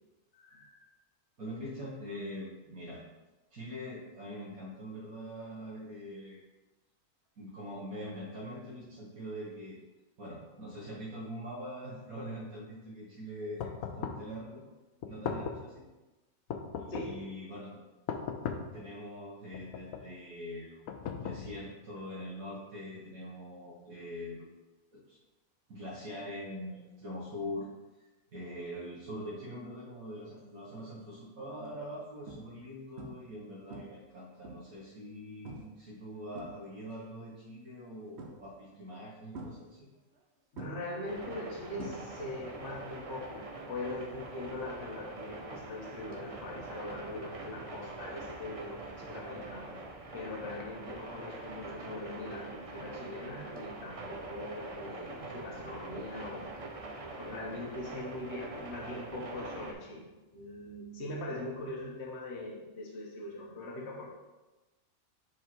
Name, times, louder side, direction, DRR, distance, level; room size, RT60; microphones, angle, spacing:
voice 1, 0.3-0.9 16.9-17.3 40.5-49.7 50.1-64.1, left 2 dB, 50° left, -2 dB, 1.3 m, -41 dB
voice 2, 1.4-3.0 3.5-6.4 7.4-9.8 10.2-14.6 15.1-15.9 16.8-17.8 18.7-20.8 21.2-24.5 24.9-25.2 25.7-27.7 28.3-39.9, equal, 75° right, -8 dB, 1.8 m, -43 dB
sound 1, 13.6-14.3 15.0-15.7 16.5-17.3 18.1-18.8 19.5-20.1 20.9-21.8, left 6 dB, 75° left, 1.0 m, -38 dB
sound 2, 30.6-31.0 31.5-31.7 32.3-32.7 33.0-33.4 33.7-34.8 35.5-35.8 36.1-37.0 38.2-38.7 39.3-40.2 40.6-42.5 42.7-43.1 45.2-45.3, right 2 dB, 55° right, 1.0 m, -46 dB
sound 3, 41.0-59.7, right 2 dB, 30° right, 0.7 m, -44 dB
5.5 x 4.8 x 4.5 m, 1.1 s
omnidirectional pair, 1.5 m